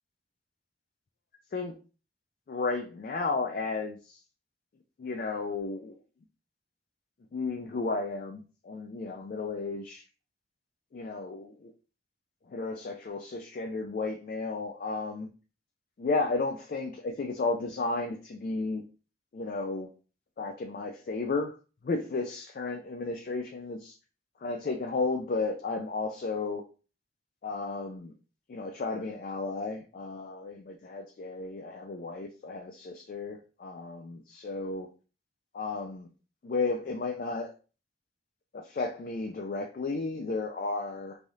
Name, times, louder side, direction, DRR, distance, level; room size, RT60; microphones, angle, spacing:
voice 1, 2.5-4.2 5.0-6.0 7.3-10.0 10.9-11.7 12.5-15.3 16.0-18.8 19.3-19.9 20.4-21.5 21.8-23.9 24.4-26.6 27.4-28.1 28.5-34.9 35.5-36.1 36.4-37.5 38.5-41.2, left 3 dB, 50° left, 4 dB, 0.3 m, -33 dB
3.3 x 2.3 x 2.6 m, 0.35 s
head